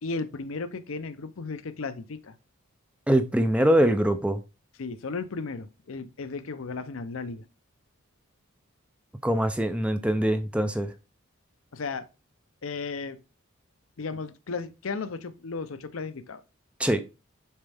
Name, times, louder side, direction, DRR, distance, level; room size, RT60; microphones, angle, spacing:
voice 1, 0.0-2.3 4.8-7.4 11.7-12.1 12.6-13.2 14.0-16.4, left 4 dB, 70° left, 0.6 m, -35 dB
voice 2, 3.1-4.4 9.2-10.9 16.8-17.0, right 1 dB, 5° right, 0.4 m, -23 dB
7.3 x 4.4 x 3.4 m
head